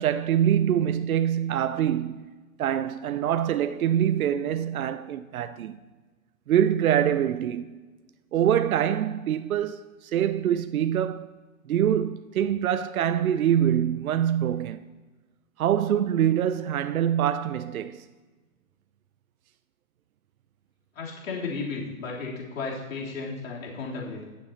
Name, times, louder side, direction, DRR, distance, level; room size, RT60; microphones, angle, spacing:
voice 1, 0.0-2.3 2.6-5.8 6.5-7.7 8.3-11.3 11.7-14.8 15.6-18.1, right 10 dB, 85° right, 0.6 m, -24 dB
voice 2, 20.9-24.2, left 4 dB, 70° left, 3.4 m, -34 dB
20.5 x 7.3 x 2.8 m
hypercardioid pair, 150°, 41 cm